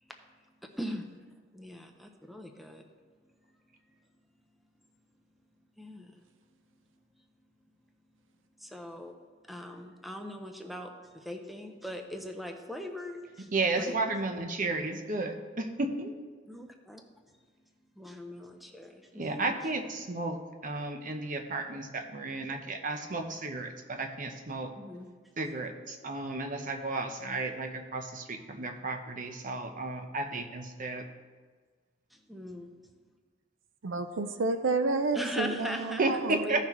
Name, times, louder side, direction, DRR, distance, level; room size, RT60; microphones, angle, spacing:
voice 1, 0.6-1.1 1.5-2.9 5.8-6.2 8.6-9.1 9.5-14.0 16.5-17.0 18.0-19.7 24.7-25.1 32.1-32.7 35.1-36.7, equal, ahead, 4 dB, 0.6 m, -40 dB
voice 2, 13.5-16.1 19.1-24.7 25.4-31.0 36.0-36.7, right 3 dB, 45° right, 5 dB, 0.8 m, -33 dB
voice 3, 33.8-36.4, right 3 dB, 80° right, 9 dB, 0.5 m, -30 dB
15.0 x 5.8 x 3.0 m, 1.5 s
head